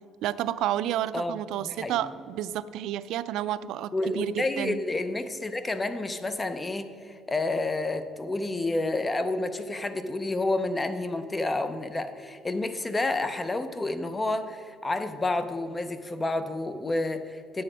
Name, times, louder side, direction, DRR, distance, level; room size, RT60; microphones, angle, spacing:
voice 1, 0.2-4.8, right 12 dB, 70° right, 15 dB, 0.3 m, -30 dB
voice 2, 1.1-2.1 3.9-17.6, left 2 dB, 15° left, 10 dB, 0.5 m, -30 dB
9.7 x 7.8 x 5.0 m, 2.5 s
cardioid pair, 140°, 0 cm